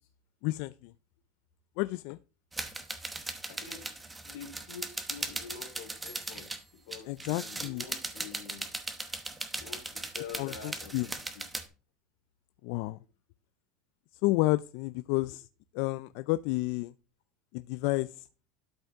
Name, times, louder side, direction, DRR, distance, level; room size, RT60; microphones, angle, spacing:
voice 1, 0.4-0.7 1.8-2.2 7.1-7.8 10.4-11.1 12.6-13.0 14.2-15.5 15.7-16.9 17.5-18.2, left 20 dB, 60° left, 0.3 m, -30 dB
sound 1, 2.5-6.6 6.9-11.6, right 2 dB, 10° right, 1.0 m, -38 dB
voice 2, 3.2-3.8 4.2-8.7 9.6-11.4, left 6 dB, 90° left, 3.2 m, -47 dB
12.5 x 5.4 x 3.5 m
cardioid pair, 160°, 0 cm